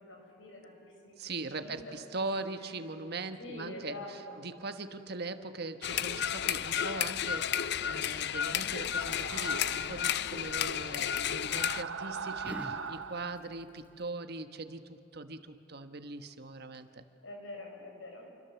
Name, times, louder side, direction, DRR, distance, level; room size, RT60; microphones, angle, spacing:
voice 1, 0.0-2.1 2.4-2.7 3.4-4.4 17.2-18.3, left 2 dB, 80° left, 1 dB, 6.1 m, -46 dB
voice 2, 1.2-4.0 4.4-17.0, right 3 dB, 55° right, 8 dB, 1.3 m, -40 dB
sound 1, 5.8-11.8, left 9 dB, 60° left, 0.5 m, -32 dB
Yell, 8.6-14.1, equal, 10° right, 1.0 m, -52 dB
sound 2, 8.8-10.0 11.3-13.4, right 5 dB, 80° right, 1.1 m, -41 dB
28.5 x 24.5 x 7.1 m, 2.6 s
head